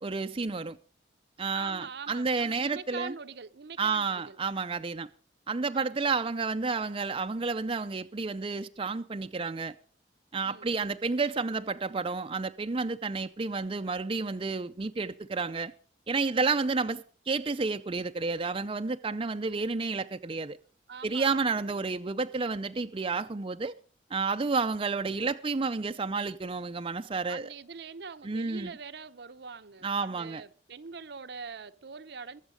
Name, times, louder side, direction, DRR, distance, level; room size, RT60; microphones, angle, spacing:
voice 1, 0.0-0.8 1.4-3.1 3.8-5.1 5.5-9.7 10.3-15.7 16.1-20.6 21.0-23.7 24.1-27.5 28.2-28.8 29.8-30.4, right 4 dB, 30° right, 0.5 m, -31 dB
voice 2, 1.5-4.4 5.7-5.9 10.4-10.7 20.9-21.6 27.3-32.4, right 5 dB, 65° right, 0.7 m, -43 dB
22.0 x 7.3 x 5.1 m
head